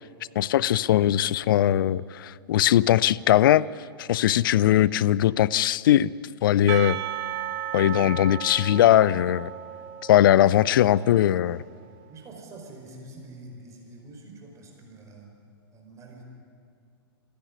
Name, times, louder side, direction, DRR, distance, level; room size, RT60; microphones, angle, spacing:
voice 1, 0.4-3.7 4.0-6.1 6.4-7.0 7.7-9.5 10.1-11.6, left 12 dB, 55° left, 22 dB, 0.5 m, -20 dB
Percussion / Church bell, 6.7-11.9, right 11 dB, 45° right, 1.5 m, -35 dB
voice 2, 10.4-11.3 12.1-15.3 15.7-16.2, right 2 dB, 20° right, 1 dB, 4.8 m, -46 dB
27.0 x 10.5 x 9.9 m, 2.3 s
figure-of-eight pair, 110°, 13 cm